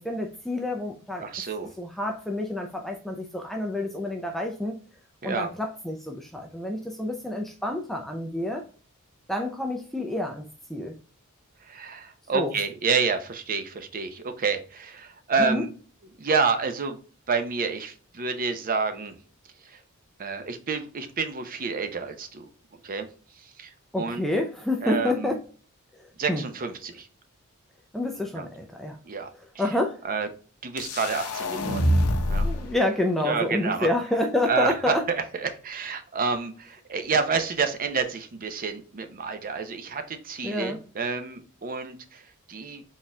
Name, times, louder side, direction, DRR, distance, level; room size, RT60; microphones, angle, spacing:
voice 1, 0.0-1.2 1.8-4.8 5.2-8.6 9.3-11.0 12.3-12.5 15.4-15.6 23.9-25.4 25.9-26.4 27.9-29.0 29.6-30.0 32.4-35.0 40.4-40.8, left 1 dB, ahead, 2 dB, 0.4 m, -28 dB
voice 2, 1.2-1.7 5.2-5.5 11.6-15.7 16.2-17.0 17.3-19.2 19.6-19.8 20.2-22.5 22.8-23.1 23.4-24.2 24.8-25.4 26.2-27.1 28.3-28.5 29.0-29.3 30.0-30.3 30.6-31.9 32.3-32.5 33.2-33.9 34.5-42.8, right 5 dB, 40° right, 8 dB, 0.6 m, -29 dB
sound 1, 30.8-32.7, equal, 85° left, 0.7 m, -25 dB
4.2 x 3.7 x 2.2 m, 0.39 s
head